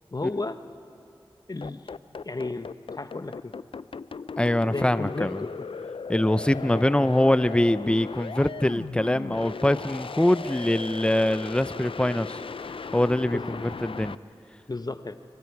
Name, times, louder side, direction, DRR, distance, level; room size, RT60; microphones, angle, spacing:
voice 1, 0.1-0.6 1.5-1.8 2.2-3.6 4.7-5.7 6.5-6.8 13.3-13.6 14.7-15.2, left 2 dB, 40° left, 10 dB, 0.8 m, -33 dB
sound 1, 1.6-14.1, left 5 dB, 65° left, 0.4 m, -37 dB
voice 2, 4.4-5.4 6.1-12.4 12.9-14.2, left 1 dB, 10° left, 14 dB, 0.5 m, -23 dB
26.5 x 24.0 x 4.7 m, 2.6 s
wide cardioid pair, 45°, 10 cm